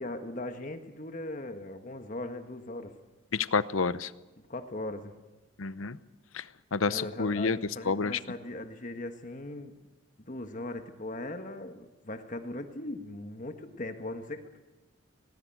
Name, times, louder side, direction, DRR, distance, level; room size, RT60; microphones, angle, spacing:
voice 1, 0.0-3.0 4.5-5.1 6.9-9.7 10.2-14.6, left 2 dB, 40° left, 7 dB, 1.4 m, -39 dB
voice 2, 3.3-4.1 5.6-6.0 6.3-6.4 6.7-7.6 7.9-8.2, left 4 dB, 90° left, 16 dB, 0.8 m, -28 dB
19.0 x 18.5 x 9.1 m, 1.1 s
head